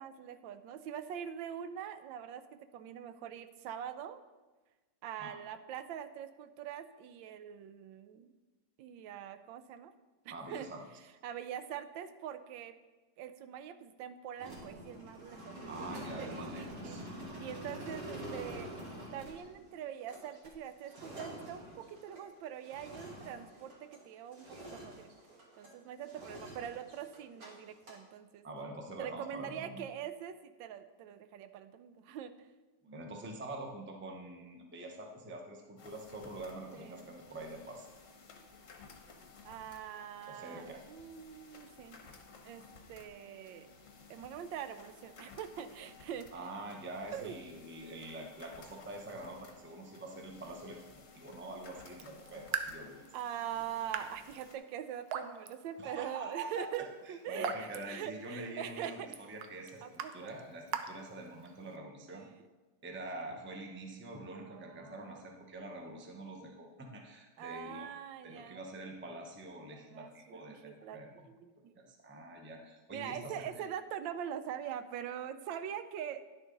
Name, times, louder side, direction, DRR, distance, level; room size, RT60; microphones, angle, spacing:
voice 1, 0.0-4.2 5.0-8.3 8.8-9.9 10.2-10.7 11.2-12.7 13.2-18.7 19.1-24.5 24.7-25.1 25.5-28.4 29.0-32.3 36.7-36.9 39.4-42.0 42.4-43.7 44.1-46.3 47.1-47.3 53.1-59.2 59.8-60.3 62.1-62.4 64.3-65.2 67.4-68.6 69.7-71.8 72.9-76.2, right 9 dB, 90° right, 11 dB, 1.3 m, -43 dB
voice 2, 10.3-10.8 15.7-17.0 28.4-29.9 32.8-37.9 40.3-40.8 46.3-53.0 55.8-56.7 57.0-62.3 62.8-67.9 68.2-71.3 71.8-73.6, right 2 dB, 15° right, 2 dB, 0.4 m, -45 dB
sound 1, 14.4-24.1 24.3-25.7 26.0-27.5 27.7-28.0, equal, 50° right, 2.1 m, -46 dB
sound 2, 35.8-54.6, left 4 dB, 50° left, 1.1 m, -57 dB
Raindrop / Drip, 51.9-61.8, right 7 dB, 70° right, 1.0 m, -44 dB
10.5 x 6.5 x 3.8 m, 1.2 s
omnidirectional pair, 2.0 m